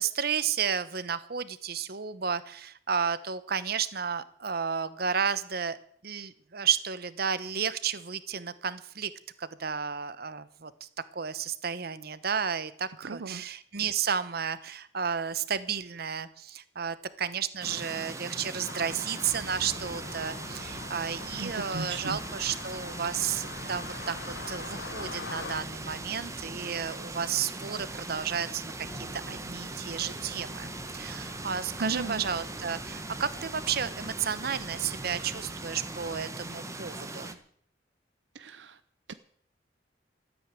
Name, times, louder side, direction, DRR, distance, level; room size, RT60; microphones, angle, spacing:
voice 1, 0.0-5.8 6.0-9.1 9.4-28.6 28.9-37.4, right 7 dB, 60° right, 15 dB, 1.0 m, -32 dB
voice 2, 13.0-13.4 21.4-22.2 31.8-32.2 38.3-38.8 39.1-39.2, right 3 dB, 80° right, 12 dB, 0.7 m, -36 dB
sound 1, 17.6-37.3, right 2 dB, 15° right, 1.3 m, -40 dB
sound 2, 18.6-25.6, left 4 dB, 70° left, 1.0 m, -43 dB
sound 3, 19.2-36.2, left 1 dB, 50° left, 3.3 m, -50 dB
14.0 x 9.3 x 9.1 m, 0.62 s
head